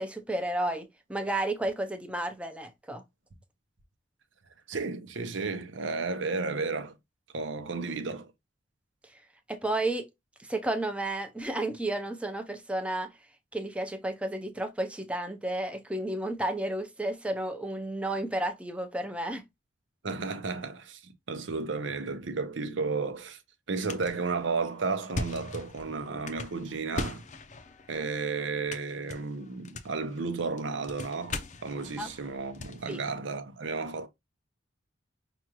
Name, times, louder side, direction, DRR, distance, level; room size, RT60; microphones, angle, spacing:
voice 1, 0.0-3.0 9.5-10.1 10.4-13.1 13.5-19.4 32.0-32.1 32.9-33.0, right 1 dB, 5° right, 0.6 m, -32 dB
voice 2, 4.7-6.9 7.3-8.3 20.0-23.4 23.7-27.2 27.9-34.1, right 4 dB, 75° right, 0.8 m, -33 dB
sound 1, 23.8-33.1, left 3 dB, 40° left, 0.6 m, -41 dB
5.8 x 2.5 x 2.9 m
head